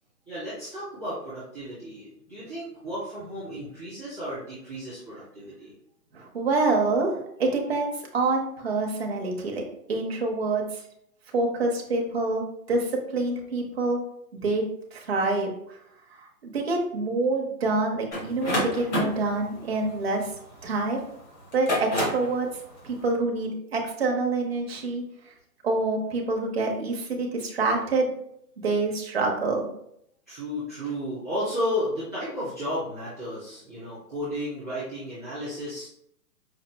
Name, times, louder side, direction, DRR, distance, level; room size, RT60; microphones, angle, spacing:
voice 1, 0.3-5.7 30.3-35.9, equal, 10° left, -16 dB, 0.6 m, -33 dB
voice 2, 6.1-9.6 9.9-10.8 11.3-14.0 14.3-14.6 14.9-15.8 16.1-20.3 20.6-21.0 21.5-22.5 22.8-25.3 25.6-28.1 28.6-29.7, right 3 dB, 40° right, 0 dB, 0.6 m, -26 dB
sound 1, 18.1-20.8 21.4-22.3, left 1 dB, 45° left, 1.2 m, -28 dB
5.0 x 2.3 x 2.2 m, 0.72 s
hypercardioid pair, 170°, 48 cm